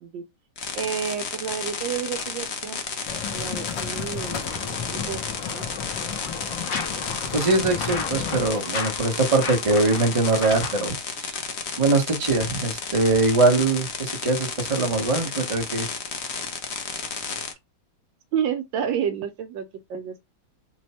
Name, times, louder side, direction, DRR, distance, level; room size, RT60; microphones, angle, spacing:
sound 1, 0.6-17.5, left 5 dB, 90° left, 0.5 m, -32 dB
voice 1, 0.7-2.8 3.3-4.6 4.8-5.2 5.5-5.7 18.3-20.3, right 8 dB, 75° right, 1.2 m, -30 dB
sound 2, 3.1-8.5, left 6 dB, 70° left, 1.4 m, -34 dB
sound 3, 4.2-10.9, left 5 dB, 55° left, 1.1 m, -35 dB
voice 2, 7.3-10.9 11.2-11.4 11.8-15.9, right 3 dB, 30° right, 0.6 m, -22 dB
4.5 x 2.1 x 4.1 m
omnidirectional pair, 2.3 m